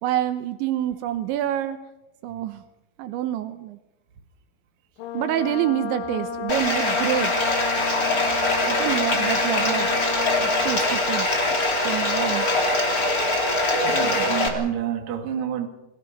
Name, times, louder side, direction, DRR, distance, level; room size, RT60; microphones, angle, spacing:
voice 1, 0.0-1.8 2.2-2.6 3.0-3.8 5.1-7.3 8.6-9.9 10.4-11.3 11.8-12.5 14.0-14.2, right 11 dB, 80° right, 3.2 m, -27 dB
Brass instrument, 5.0-10.8, left 5 dB, 75° left, 3.8 m, -32 dB
Bathtub (filling or washing), 6.5-14.5, left 2 dB, 25° left, 2.4 m, -23 dB
voice 2, 13.8-15.7, right 9 dB, 50° right, 2.8 m, -28 dB
28.5 x 21.5 x 5.4 m
omnidirectional pair, 5.4 m